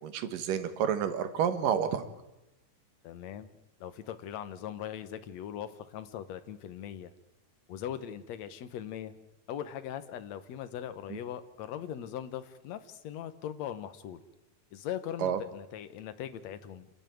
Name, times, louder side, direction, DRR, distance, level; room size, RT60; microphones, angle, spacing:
voice 1, 0.0-2.1 11.1-11.2 15.2-15.4, right 8 dB, 85° right, 10 dB, 3.1 m, -29 dB
voice 2, 3.0-7.1 7.7-9.1 9.5-14.2 14.7-16.9, left 10 dB, 65° left, 11 dB, 2.2 m, -40 dB
28.0 x 12.5 x 9.2 m, 0.97 s
omnidirectional pair, 3.7 m